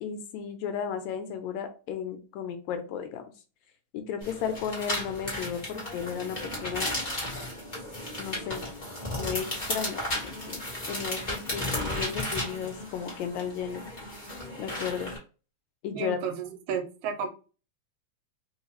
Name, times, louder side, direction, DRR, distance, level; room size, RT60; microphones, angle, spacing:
voice 1, 0.0-3.3 3.9-6.9 8.2-8.6 9.2-10.6 10.9-14.2 14.6-15.1 15.8-16.2, left 7 dB, 80° left, 7 dB, 1.9 m, -34 dB
sound 1, 4.2-15.2, left 1 dB, 35° left, 0.7 m, -34 dB
voice 2, 15.9-17.3, right 7 dB, 80° right, 5 dB, 2.0 m, -32 dB
4.5 x 2.3 x 3.0 m, 0.34 s
omnidirectional pair, 3.3 m